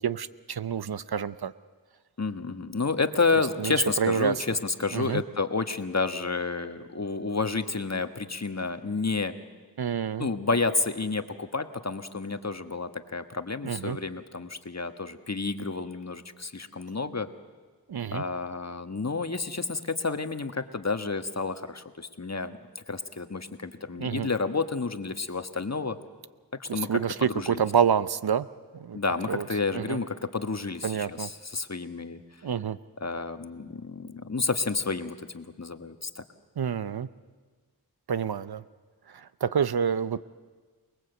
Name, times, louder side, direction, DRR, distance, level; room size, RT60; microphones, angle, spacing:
voice 1, 0.0-1.5 3.6-4.3 4.9-5.2 9.8-10.3 13.6-14.0 17.9-18.2 24.0-24.3 26.7-28.5 28.7-29.0 29.3-29.4 29.7-30.0 30.8-31.3 32.4-32.8 36.6-37.1 38.1-38.6 39.1-40.2, right 7 dB, 70° right, 15 dB, 0.8 m, -28 dB
voice 2, 2.2-9.3 10.2-17.3 18.1-26.0 26.6-27.7 28.9-32.2 33.0-36.2, left 4 dB, 40° left, 8 dB, 1.5 m, -30 dB
28.5 x 20.0 x 8.1 m, 1.4 s
wide cardioid pair, 45°, 39 cm